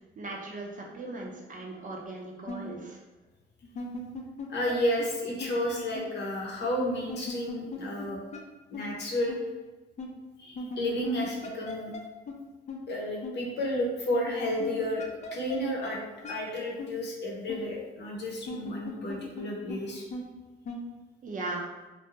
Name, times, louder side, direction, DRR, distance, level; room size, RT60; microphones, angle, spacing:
voice 1, 0.2-3.0 21.2-21.6, right 2 dB, 40° right, -1 dB, 0.6 m, -38 dB
sound 1, 2.5-2.6 3.6-4.7 5.0-5.1 5.4-5.5 5.9-6.1 7.1-8.1 8.3-8.4 8.7-8.8 9.3-9.4 10.0-10.1 10.6-12.0 12.3-12.4 12.7-12.8 13.2-13.3 14.1-15.6 15.8-15.9 16.2-16.4 16.8-16.9 17.5-17.6 18.3-19.4 19.7-19.8 20.1-20.2 20.7-20.8, left 3 dB, 35° left, 0.4 m, -38 dB
voice 2, 4.5-8.2 8.7-9.4 10.4-11.9 12.9-15.0 15.3-16.0 16.3-20.0, left 1 dB, 60° left, -2 dB, 0.8 m, -31 dB
2.5 x 2.2 x 2.9 m, 1.2 s
cardioid pair, 90°, 20 cm